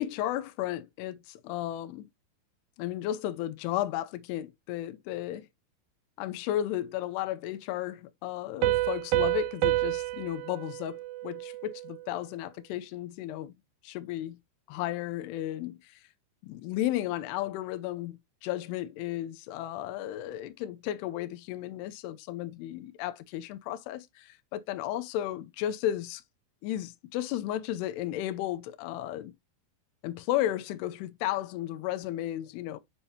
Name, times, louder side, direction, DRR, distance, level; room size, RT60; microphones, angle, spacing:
voice 1, 0.0-2.1 2.8-5.5 6.2-13.5 13.8-14.4 14.7-16.0 16.4-26.2 26.6-29.3 30.0-32.8, left 13 dB, 80° left, 2.6 m, -34 dB
Piano, 8.6-12.0, right 17 dB, 85° right, 2.5 m, -29 dB
7.3 x 5.4 x 2.7 m
omnidirectional pair, 5.0 m